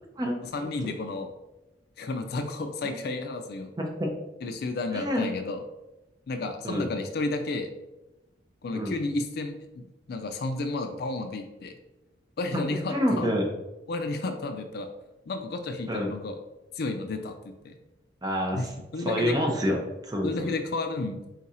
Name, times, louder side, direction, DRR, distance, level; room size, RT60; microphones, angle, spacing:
voice 1, 0.5-1.3 2.0-3.7 4.4-5.6 6.3-7.7 8.6-11.7 12.4-13.3 13.9-14.9 15.3-16.3 16.8-17.3 17.6-17.7 18.5-18.7 18.9-19.3 20.2-21.3, left 2 dB, 60° left, 6 dB, 0.4 m, -32 dB
voice 2, 3.8-4.1 4.9-5.3 6.6-6.9 8.7-8.9 12.9-13.5 15.9-16.1 18.2-18.7 19.0-20.5, equal, 20° right, 1 dB, 0.7 m, -28 dB
3.9 x 2.4 x 4.2 m, 0.99 s
head